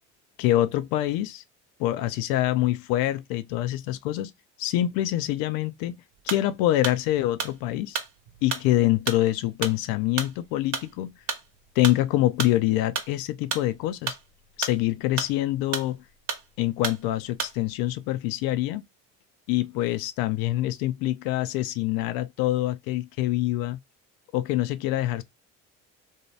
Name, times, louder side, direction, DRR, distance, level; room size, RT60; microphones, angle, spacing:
voice 1, 0.4-1.4 1.8-4.3 4.6-6.0 6.2-8.0 8.4-11.1 11.8-14.2 14.6-16.0 16.6-18.8 19.5-23.8 24.3-25.2, left 15 dB, 75° left, 0.6 m, -25 dB
sound 1, 6.2-17.8, right 6 dB, 55° right, 0.9 m, -33 dB
2.7 x 2.3 x 3.1 m
supercardioid pair, 80°, 36 cm